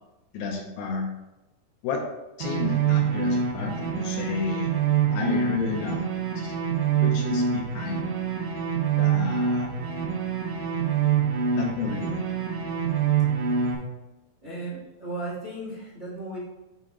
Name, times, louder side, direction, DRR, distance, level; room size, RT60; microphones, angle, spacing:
voice 1, 0.3-1.1 1.8-2.1 2.4-4.7 5.1-6.0 6.4-6.5 7.0-8.0 9.0-9.7 11.6-12.4, left 4 dB, 75° left, 2 dB, 2.3 m, -31 dB
sound 1, 2.4-13.7, right 7 dB, 80° right, 3.0 m, -25 dB
voice 2, 14.4-16.4, right 2 dB, 30° right, -6 dB, 1.3 m, -35 dB
7.5 x 3.8 x 3.8 m, 1.0 s
omnidirectional pair, 4.7 m